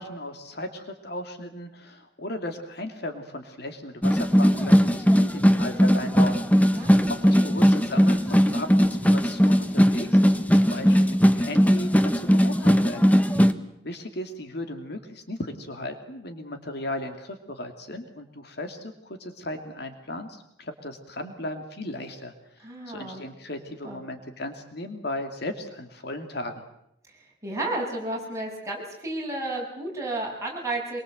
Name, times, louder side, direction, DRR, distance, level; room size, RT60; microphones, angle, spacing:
voice 1, 0.0-13.1 13.8-22.3 22.9-26.6, left 1 dB, 60° left, 6 dB, 2.6 m, -36 dB
sound 1, 4.0-13.5, equal, 10° left, 1.1 m, -19 dB
voice 2, 6.7-7.5 22.6-23.2 23.8-24.0 27.1-31.0, right 2 dB, 15° right, -3 dB, 7.8 m, -32 dB
25.0 x 23.5 x 8.0 m, 0.75 s
head